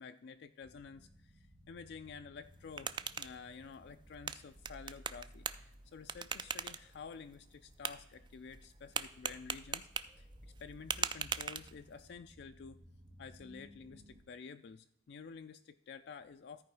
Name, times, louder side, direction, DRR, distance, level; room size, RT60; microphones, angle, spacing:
voice 1, 0.0-9.9 10.2-12.8 13.2-16.6, left 5 dB, 65° left, 8 dB, 0.4 m, -51 dB
sound 1, 0.6-14.2, equal, 50° right, 2.1 m, -59 dB
sound 2, 2.4-12.1, right 7 dB, 25° right, 0.3 m, -43 dB
13.5 x 4.7 x 4.7 m, 0.78 s
head